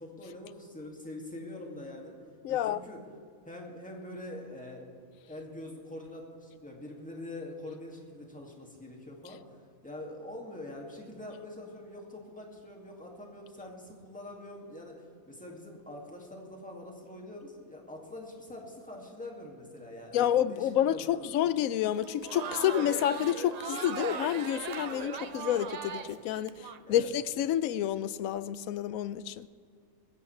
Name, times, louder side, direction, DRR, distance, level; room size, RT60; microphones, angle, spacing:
voice 1, 0.0-2.2 2.5-3.1 3.5-4.9 5.2-21.4 26.5-27.1, left 1 dB, 5° left, 2.1 m, -44 dB
voice 2, 2.4-2.8 20.1-26.5 26.9-29.5, left 11 dB, 75° left, 1.0 m, -29 dB
Crowd, 21.9-26.8, right 6 dB, 80° right, 0.3 m, -38 dB
20.5 x 16.0 x 3.3 m
omnidirectional pair, 1.5 m